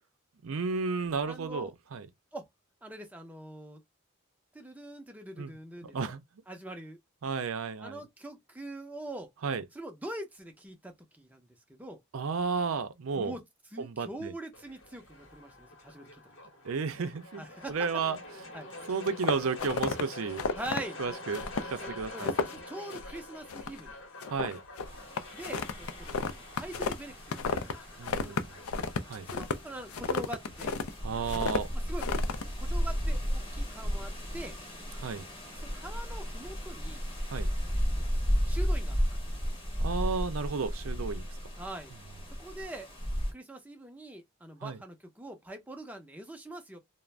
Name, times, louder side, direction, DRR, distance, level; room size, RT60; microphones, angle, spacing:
voice 1, 0.4-2.1 5.4-5.5 5.8-6.2 7.2-8.0 9.4-9.6 12.1-13.3 13.8-14.3 16.6-18.2 18.9-20.4 21.0-22.3 24.3-24.6 28.0-28.5 29.1-29.3 31.0-31.7 35.0-35.2 37.3-37.5 39.8-41.3 44.6-44.8, right 5 dB, 75° right, 0.5 m, -33 dB
voice 2, 1.3-1.7 2.3-2.5 2.8-3.8 4.5-6.0 6.5-7.0 7.8-9.3 9.7-12.0 13.1-13.4 13.7-16.2 17.4-17.9 18.5-18.7 20.5-21.0 21.8-24.0 25.3-27.9 28.2-28.3 29.3-31.4 31.7-32.1 32.6-34.6 35.5-37.0 38.5-39.6 41.6-41.9 42.3-42.9 43.3-46.8, right 1 dB, 5° right, 0.5 m, -43 dB
sound 1, 14.5-30.5, left 2 dB, 60° left, 0.9 m, -47 dB
sound 2, 19.1-20.0 20.4-20.8 21.3-21.7 22.0-22.6 22.9-23.2 23.5-23.9 24.2-27.7 28.0-30.9 31.3-31.6 32.0-32.4, left 4 dB, 80° left, 0.4 m, -32 dB
sound 3, 24.9-43.3, equal, 25° left, 0.8 m, -34 dB
2.4 x 2.0 x 3.1 m
head